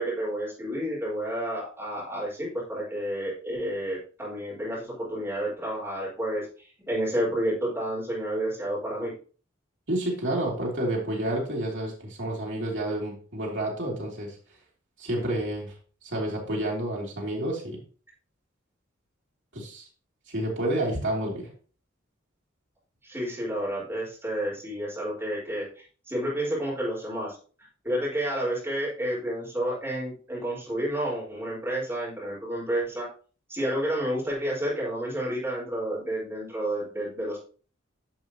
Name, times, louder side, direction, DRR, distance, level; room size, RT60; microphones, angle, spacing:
voice 1, 0.0-9.1 23.0-27.3 27.8-33.1 33.5-37.4, right 1 dB, 10° right, -7 dB, 4.7 m, -30 dB
voice 2, 9.9-14.4 15.0-15.7 16.0-17.8 19.5-19.9 20.3-21.5, right 1 dB, 60° right, -3 dB, 2.9 m, -29 dB
10.5 x 6.1 x 3.0 m, 0.39 s
head